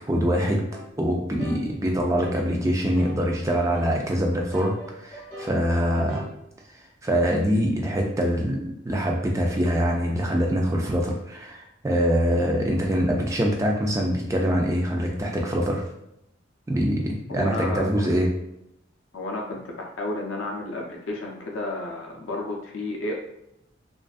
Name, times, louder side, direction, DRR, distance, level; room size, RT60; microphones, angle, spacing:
voice 1, 0.1-0.6 1.0-6.2 7.0-8.6 8.8-15.8 16.7-18.3, equal, 15° right, 0 dB, 0.3 m, -24 dB
sound 1, 0.7-0.9 1.4-1.6 2.2-2.4 3.0-3.2 3.7-4.0 4.5-5.6 6.1-6.3, equal, 20° left, 1.2 m, -39 dB
voice 2, 17.3-18.2 19.1-23.1, left 2 dB, 80° left, 0 dB, 0.5 m, -32 dB
2.5 x 2.3 x 2.3 m, 0.82 s
head